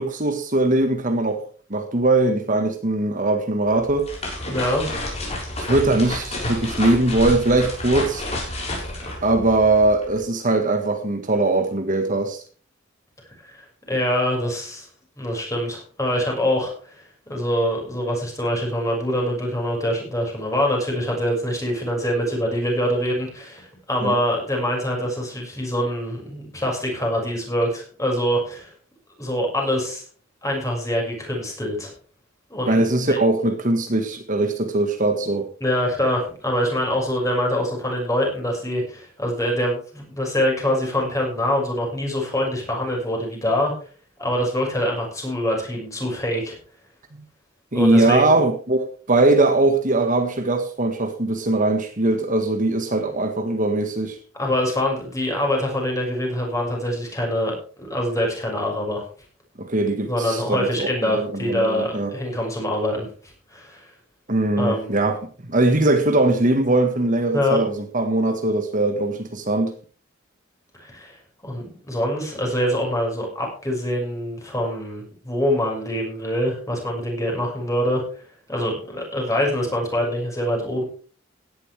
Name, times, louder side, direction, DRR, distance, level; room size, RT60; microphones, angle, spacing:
voice 1, 0.0-1.4 1.7-4.1 5.6-8.2 9.2-12.4 24.0-24.2 32.7-35.5 47.7-54.2 59.6-62.1 64.3-69.7, right 2 dB, 40° right, 1.6 m, -21 dB
sound 1, 3.7-10.1, left 1 dB, 30° left, 6.5 m, -30 dB
voice 2, 4.5-4.8 13.4-14.9 15.2-17.0 17.3-28.7 29.2-30.0 30.4-31.9 32.5-33.2 35.6-43.7 44.2-46.6 47.7-48.4 54.4-59.0 60.1-63.1 63.5-63.9 64.6-65.0 67.3-67.6 70.8-71.2 71.4-78.0 78.5-80.8, equal, 15° left, 6.3 m, -24 dB
16.5 x 11.5 x 3.5 m
head